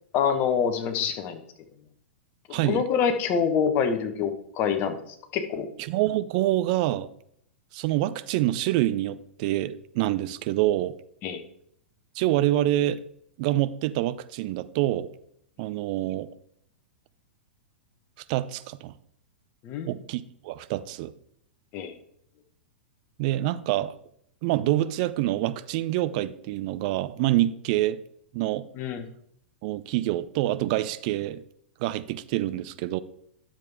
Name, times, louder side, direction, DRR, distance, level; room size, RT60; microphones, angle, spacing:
voice 1, 0.1-1.4 2.6-5.7 11.2-11.4 19.6-19.9 21.7-21.9 28.7-29.0, left 7 dB, 35° left, 7 dB, 1.3 m, -26 dB
voice 2, 2.5-2.8 5.9-7.1 7.7-10.9 12.2-13.0 13.4-15.1 15.6-16.3 18.3-18.9 19.8-21.1 23.2-23.9 24.4-28.0 28.3-28.7 29.6-31.4 31.8-33.0, right 15 dB, 45° right, 14 dB, 0.6 m, -26 dB
10.5 x 7.3 x 3.6 m, 0.69 s
figure-of-eight pair, 100°, 6 cm